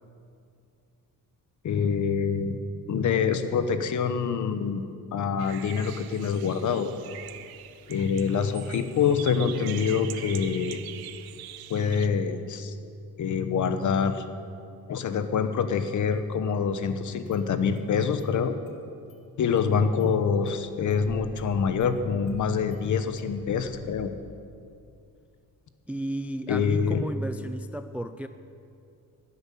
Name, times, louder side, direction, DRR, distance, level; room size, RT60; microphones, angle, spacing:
voice 1, 1.6-2.6 2.9-4.8 5.1-6.9 7.9-10.8 11.7-12.7 13.2-14.2 14.9-18.5 19.4-24.2 26.5-27.0, left 6 dB, 55° left, 9 dB, 1.0 m, -26 dB
sound 1, 5.4-12.1, right 12 dB, 85° right, 0.8 m, -43 dB
Engine starting, 15.9-16.0 17.2-17.9 18.2-18.3 18.7-18.8 19.1-19.2 19.6-20.1 20.4-24.4, left 3 dB, 75° left, 2.1 m, -49 dB
voice 2, 25.9-28.3, right 1 dB, 5° right, 10 dB, 0.3 m, -33 dB
13.0 x 8.0 x 10.0 m, 2.5 s
cardioid pair, 115°, 36 cm